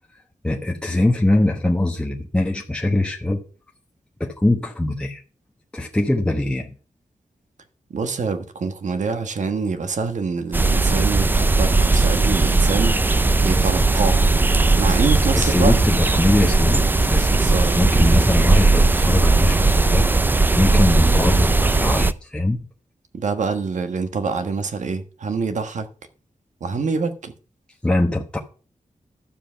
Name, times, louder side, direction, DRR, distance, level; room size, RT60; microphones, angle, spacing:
voice 1, 0.4-3.4 4.2-5.2 5.7-6.7 15.3-17.3 17.8-20.1 20.6-22.6 27.8-28.4, left 1 dB, 10° left, 1.0 m, -22 dB
voice 2, 7.9-14.3 14.7-15.7 17.3-17.8 23.1-25.9 26.6-27.3, right 4 dB, 70° right, 1.4 m, -25 dB
sound 1, 10.5-22.1, right 3 dB, 15° right, 0.4 m, -17 dB
12.5 x 7.3 x 5.7 m
wide cardioid pair, 175°, 13 cm